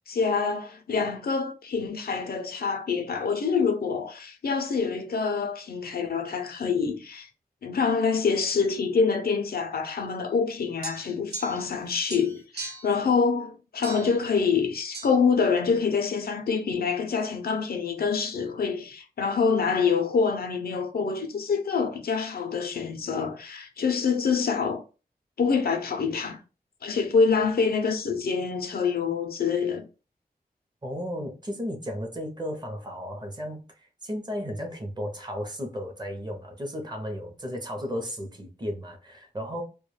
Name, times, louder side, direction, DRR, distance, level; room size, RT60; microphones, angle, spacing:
voice 1, 0.1-7.3 7.6-24.8 25.4-26.4 26.8-29.9, left 5 dB, 70° left, 0.4 m, -26 dB
sound 1, 10.8-11.8 12.1-13.0 13.8-14.2 14.9-15.1, right 3 dB, 85° right, 0.6 m, -39 dB
voice 2, 30.8-39.6, equal, 25° right, 0.6 m, -34 dB
2.2 x 2.1 x 3.1 m
wide cardioid pair, 105°, 16 cm